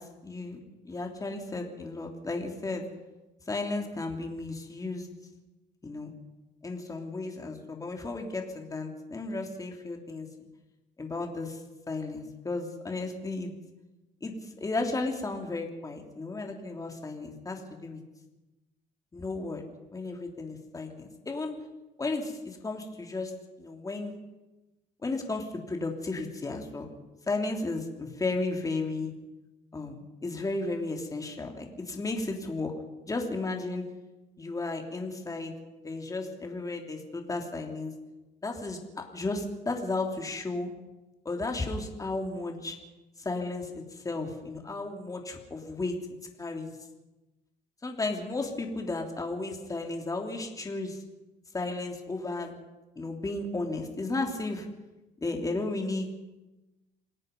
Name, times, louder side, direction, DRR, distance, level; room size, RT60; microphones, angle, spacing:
voice 1, 0.2-0.6 0.8-2.9 3.5-5.1 5.8-6.1 6.6-10.3 11.0-11.6 11.9-13.5 14.2-18.0 19.1-19.6 19.9-21.6 22.0-23.3 23.6-24.2 25.0-26.9 27.3-29.1 29.7-32.7 33.1-33.8 34.4-35.5 35.8-37.9 38.4-40.7 41.2-42.8 43.2-46.0 46.4-46.7 47.8-51.0 51.5-52.5 52.9-54.7 55.2-56.2, left 3 dB, 20° left, 2 dB, 3.2 m, -34 dB
27.5 x 18.0 x 5.4 m, 1.1 s
cardioid pair, 110°, 17 cm